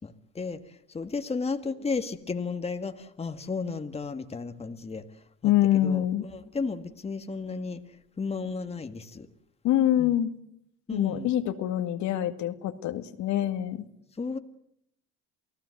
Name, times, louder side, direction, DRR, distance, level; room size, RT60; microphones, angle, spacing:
voice 1, 0.0-9.3 10.0-10.1 10.9-11.3 14.2-14.4, left 4 dB, 20° left, 7 dB, 1.8 m, -34 dB
voice 2, 5.4-6.2 9.6-10.3 10.9-13.9, left 12 dB, 65° left, 8 dB, 2.2 m, -25 dB
28.5 x 17.5 x 7.8 m, 0.73 s
supercardioid pair, 95°, 31 cm